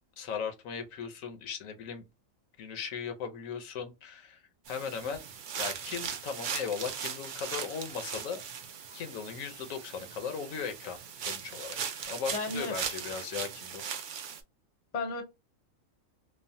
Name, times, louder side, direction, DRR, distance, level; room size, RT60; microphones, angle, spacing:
voice 1, 0.2-2.0 2.6-4.4 4.7-5.3 5.6-8.4 8.9-11.8 12.1-13.9, left 6 dB, 80° left, 1.1 m, -37 dB
sound 1, 4.7-14.4, right 7 dB, 70° right, 0.4 m, -39 dB
voice 2, 12.3-12.7 14.9-15.2, left 3 dB, 40° left, 0.7 m, -33 dB
3.1 x 2.0 x 2.6 m
omnidirectional pair, 1.4 m